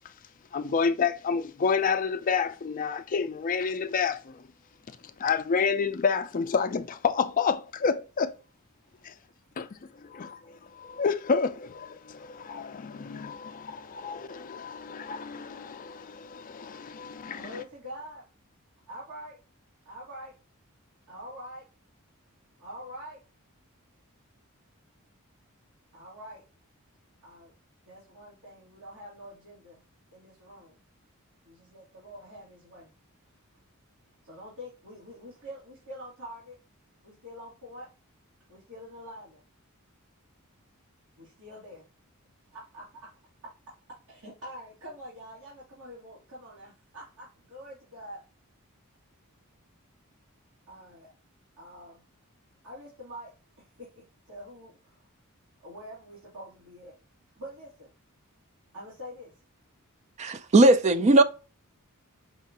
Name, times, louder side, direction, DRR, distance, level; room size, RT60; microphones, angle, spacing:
voice 1, 0.5-4.4 5.2-8.3 9.0-9.1 9.6-9.7 10.1-10.4 10.8-17.6, left 5 dB, 40° left, 0.4 m, -29 dB
voice 2, 17.3-18.3 18.9-19.4 19.8-20.3 21.1-21.7 22.6-23.2 25.9-26.4 27.2-27.5 27.9-30.8 31.4-32.9 34.2-36.6 37.0-37.9 38.5-39.4 41.2-41.9 42.5-43.1 44.1-48.2 50.7-51.1 51.6-52.0 52.6-53.3 53.6-55.0 55.6-57.0 57.4-57.9 58.7-59.4 60.7-60.9, equal, 85° right, 2.1 m, -45 dB
voice 3, 60.2-61.2, right 2 dB, 30° right, 0.4 m, -18 dB
5.4 x 2.5 x 2.8 m
head